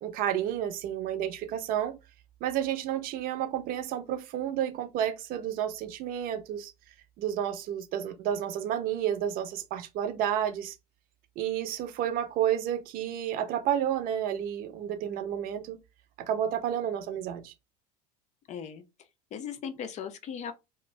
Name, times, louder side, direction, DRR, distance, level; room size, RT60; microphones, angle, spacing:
voice 1, 0.0-2.0 2.4-6.7 7.2-10.7 11.4-15.8 16.3-17.5, right 10 dB, 45° right, 0.7 m, -31 dB
voice 2, 18.5-18.8 19.3-20.5, left 7 dB, 35° left, 0.5 m, -37 dB
2.5 x 2.1 x 3.1 m
hypercardioid pair, 75°, 20 cm